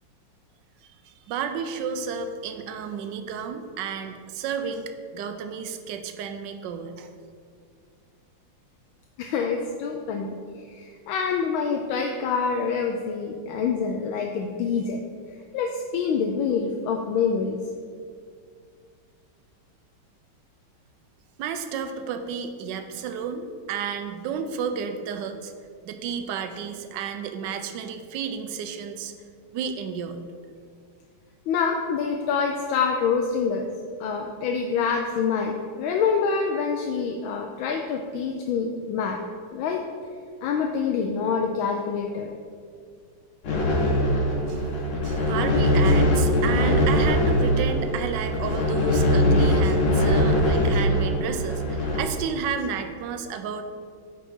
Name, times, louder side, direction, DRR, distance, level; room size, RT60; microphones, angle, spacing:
voice 1, 1.0-7.1 21.4-25.5 25.8-29.1 29.5-30.2 44.5-44.6 45.0-53.6, right 6 dB, 70° right, 7 dB, 1.2 m, -32 dB
voice 2, 9.2-10.3 10.7-15.0 15.5-17.6 31.5-33.6 34.0-39.2 39.5-39.8 40.4-42.3, left 5 dB, 80° left, 2 dB, 1.4 m, -26 dB
sound 1, 43.4-52.0, left 1 dB, 60° left, 2.0 m, -21 dB
8.7 x 4.8 x 5.4 m, 2.1 s
omnidirectional pair, 2.3 m